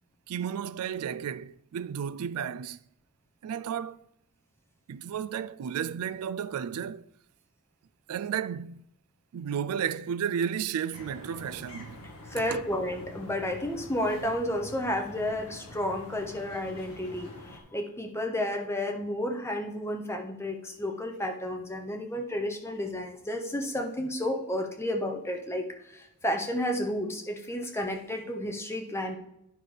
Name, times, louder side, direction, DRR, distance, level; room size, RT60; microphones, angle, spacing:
voice 1, 0.3-2.8 3.4-4.0 4.9-7.1 8.1-8.8 9.3-12.1 12.4-12.6, right 8 dB, 80° right, 0.3 m, -33 dB
sound 1, 10.9-17.6, left 1 dB, 85° left, 1.7 m, -46 dB
voice 2, 12.3-29.2, left 1 dB, 10° left, 0.8 m, -32 dB
10.5 x 5.7 x 3.4 m
head